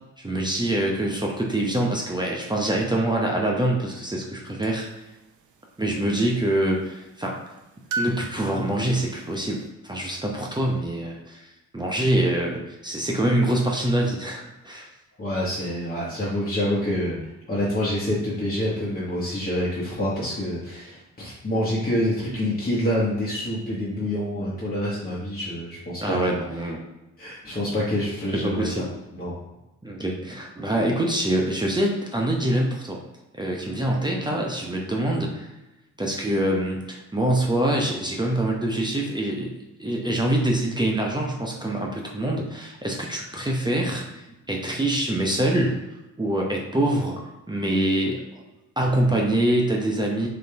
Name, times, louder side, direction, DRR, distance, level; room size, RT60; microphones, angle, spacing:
voice 1, 0.2-4.9 5.8-7.4 8.0-11.5 11.7-14.9 26.0-26.8 28.3-28.9 29.8-33.0 33.3-35.5 36.0-39.5 39.8-44.2 44.5-45.8 46.2-48.2 48.8-50.3, right 1 dB, 10° right, -1 dB, 0.9 m, -25 dB
sound 1, 4.6-4.7 7.9-9.4, right 3 dB, 45° right, 0.8 m, -33 dB
voice 2, 15.2-17.2 17.5-26.3 27.2-28.8 29.1-29.3, left 1 dB, 20° left, -7 dB, 1.5 m, -27 dB
4.0 x 3.3 x 3.4 m, 1.0 s
figure-of-eight pair, 45°, 43 cm